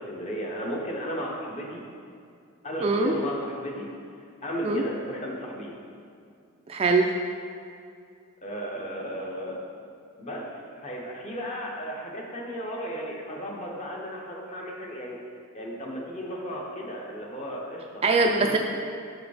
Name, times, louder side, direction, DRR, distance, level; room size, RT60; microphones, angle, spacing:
voice 1, 0.0-1.8 2.6-3.9 4.4-5.8 8.4-9.6 10.2-10.5 10.8-15.2 15.5-18.0 18.4-18.6, equal, 30° left, -1 dB, 1.1 m, -34 dB
voice 2, 2.8-3.2 4.6-4.8 6.7-7.1 18.0-18.6, right 3 dB, 25° right, 2 dB, 0.4 m, -22 dB
7.2 x 5.0 x 4.9 m, 2.4 s
head